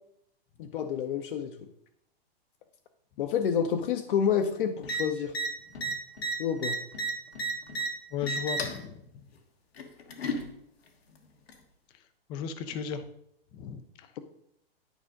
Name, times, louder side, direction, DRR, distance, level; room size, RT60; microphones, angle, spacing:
voice 1, 0.6-1.6 3.2-5.3 6.4-6.8, left 7 dB, 60° left, 5 dB, 0.7 m, -28 dB
sound 1, 4.8-5.0 5.3-5.5 5.8-7.9 8.2-8.8 9.8-10.4 11.5-11.6, right 2 dB, 85° left, 1.4 m, -32 dB
voice 2, 8.1-9.3 12.3-13.0 13.5-14.1, left 7 dB, 15° left, 10 dB, 0.3 m, -36 dB
10.0 x 4.9 x 3.7 m, 0.74 s
hypercardioid pair, 135°, 30 cm